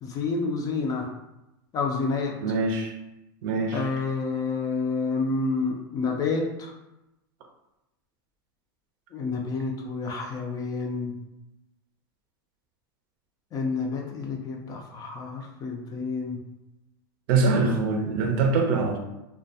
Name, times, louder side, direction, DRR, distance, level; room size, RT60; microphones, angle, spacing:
voice 1, 0.0-1.1 1.7-2.3 3.7-6.7 9.1-11.1 13.5-16.4, left 4 dB, 30° left, 1 dB, 0.4 m, -29 dB
voice 2, 2.4-2.9 3.4-3.9 17.3-19.0, right 3 dB, 65° right, 2 dB, 0.5 m, -23 dB
2.2 x 2.1 x 2.7 m, 0.93 s
supercardioid pair, 120°, 12 cm